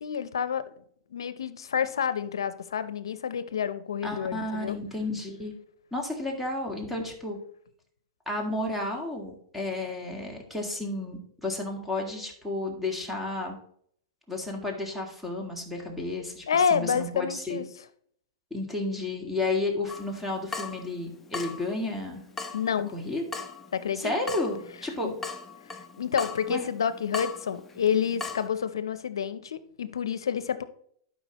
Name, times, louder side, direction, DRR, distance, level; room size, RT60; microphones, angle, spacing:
voice 1, 0.0-0.6 1.1-4.8 16.5-17.6 22.5-22.9 23.7-24.1 25.0-25.2 25.7-30.6, left 7 dB, 85° left, 14 dB, 0.6 m, -29 dB
voice 2, 4.0-5.5 5.9-7.4 8.3-13.6 14.3-17.6 18.5-22.2 22.9-23.2 24.0-25.1 26.5-26.6, left 2 dB, 5° right, 1 dB, 1.9 m, -32 dB
Water tap faucet / Drip, 19.9-28.5, left 4 dB, 10° left, 0.8 m, -40 dB
12.0 x 5.1 x 3.0 m, 0.64 s
hypercardioid pair, 125°, 2 cm